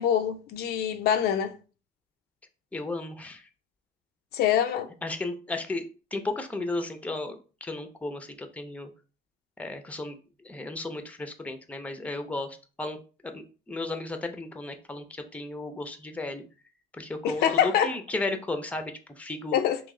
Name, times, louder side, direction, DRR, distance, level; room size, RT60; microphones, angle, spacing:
voice 1, 0.0-1.5 4.3-4.9 17.2-17.9 19.5-19.8, left 9 dB, 75° left, 0.5 m, -24 dB
voice 2, 2.7-3.5 5.0-5.9 6.1-8.9 9.6-13.0 13.2-16.4 16.9-19.6, left 2 dB, 10° left, 0.6 m, -34 dB
3.1 x 3.0 x 3.7 m
cardioid pair, 110°, 17 cm